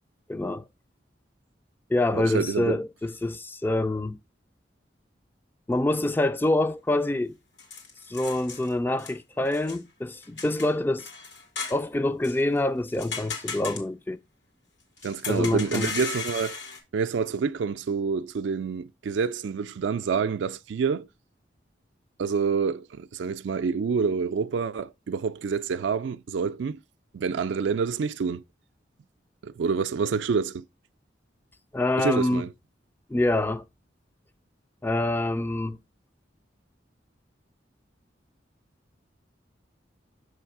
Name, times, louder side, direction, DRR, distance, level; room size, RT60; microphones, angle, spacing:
voice 1, 0.3-0.6 1.9-4.2 5.7-7.4 8.1-11.1 11.7-14.2 15.3-15.9 31.7-32.5 33.1-33.6 34.8-35.8, left 1 dB, 10° left, 0.3 m, -26 dB
voice 2, 2.1-2.8 15.0-16.6 16.9-21.1 22.2-26.8 27.1-28.4 29.4-30.6 32.0-32.5, right 5 dB, 80° right, 0.4 m, -27 dB
sound 1, 7.6-8.7 9.0-9.1 9.5-9.8 10.2-11.8 12.2-12.4 12.9-13.8 15.0-16.8, left 4 dB, 90° left, 2.2 m, -36 dB
7.1 x 3.3 x 4.7 m
head